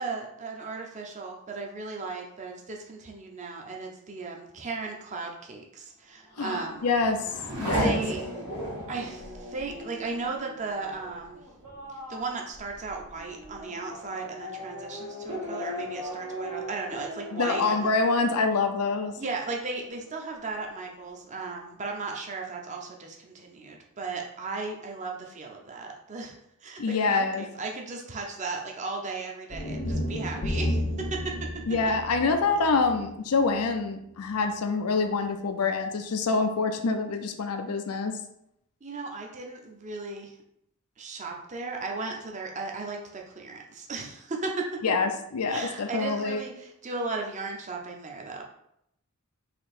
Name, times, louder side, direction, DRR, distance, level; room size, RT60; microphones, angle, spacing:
voice 1, 0.0-6.8 7.8-8.2 8.9-11.4 12.1-17.9 19.2-26.3 26.6-31.5 38.8-40.3 41.0-44.7 45.5-48.4, right 3 dB, 35° right, 1 dB, 0.6 m, -36 dB
Race car auto racing / Accelerating revving vroom, 6.2-19.4 19.8-20.5, equal, 80° right, 1.5 m, -37 dB
voice 2, 6.4-8.0 17.3-19.1 26.8-27.5 31.7-38.1 44.8-46.4, left 4 dB, 90° left, 6 dB, 0.5 m, -26 dB
sound 1, 29.5-33.7, left 1 dB, 45° left, 0.6 m, -32 dB
4.3 x 2.9 x 4.2 m, 0.76 s
head